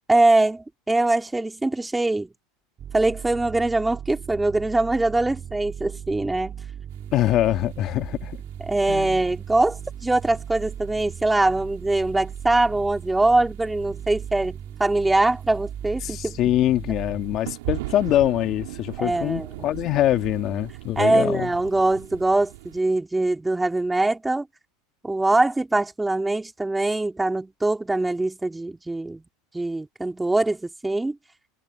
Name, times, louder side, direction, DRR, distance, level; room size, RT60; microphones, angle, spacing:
voice 1, 0.1-2.3 2.9-6.6 8.7-16.4 19.0-19.7 21.0-24.5 25.0-29.2 29.5-31.2, right 2 dB, 5° right, 3.0 m, -23 dB
sound 1, 2.8-17.4, right 9 dB, 30° right, 3.0 m, -37 dB
sound 2, 6.9-9.3 9.6-10.4 10.7-11.7 12.1-12.9 13.1-14.0 14.3-14.8 15.3-15.4 15.9-22.8, right 20 dB, 75° right, 3.1 m, -38 dB
voice 2, 7.1-8.4 8.9-9.2 16.0-21.5, left 13 dB, 40° left, 1.8 m, -24 dB
supercardioid pair, 135°, 0 cm